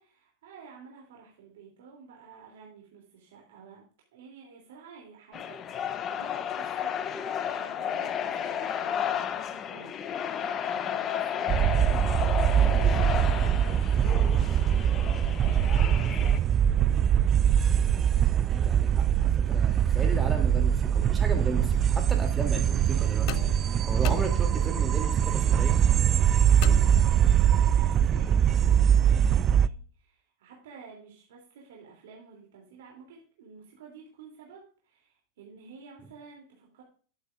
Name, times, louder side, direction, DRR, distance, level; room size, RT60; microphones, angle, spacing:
voice 1, 0.0-3.8 4.1-5.6 6.0-10.2 10.7-16.5 16.7-17.2 26.4-36.8, right 5 dB, 75° right, -1 dB, 3.0 m, -51 dB
sound 1, 5.3-16.4, left 8 dB, 35° left, 0.9 m, -32 dB
sound 2, 11.5-29.7, right 9 dB, 35° right, 0.4 m, -23 dB
voice 2, 18.5-23.3 23.8-25.8, right 3 dB, 15° right, 3 dB, 2.8 m, -35 dB
sound 3, 23.3-24.9 26.6-27.6, left 22 dB, 55° left, 0.3 m, -40 dB
11.5 x 8.2 x 2.5 m, 0.41 s
hypercardioid pair, 95°, 0 cm